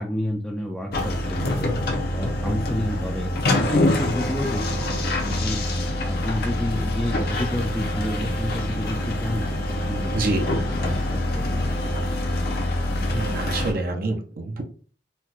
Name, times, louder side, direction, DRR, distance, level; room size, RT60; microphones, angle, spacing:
voice 1, 0.0-1.7 2.1-3.3 3.6-5.6 6.0-12.1, left 1 dB, 5° left, -1 dB, 0.4 m, -30 dB
sound 1, 0.9-13.7, left 1 dB, 55° left, 0.8 m, -25 dB
voice 2, 10.1-10.5 13.1-14.6, right 2 dB, 55° right, 4 dB, 0.6 m, -27 dB
4.2 x 2.3 x 2.4 m, 0.40 s
head